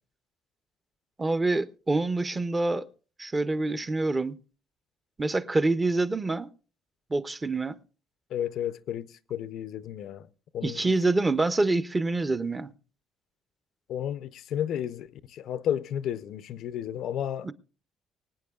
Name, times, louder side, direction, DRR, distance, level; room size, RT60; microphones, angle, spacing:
voice 1, 1.2-2.9 3.2-4.4 5.2-6.5 7.1-7.8 10.6-12.7 17.4-17.5, right 2 dB, 15° right, 0.5 m, -26 dB
voice 2, 8.3-10.3 10.5-10.9 13.9-17.5, left 10 dB, 65° left, 0.5 m, -32 dB
24.5 x 9.0 x 2.3 m
cardioid pair, 155°, 0 cm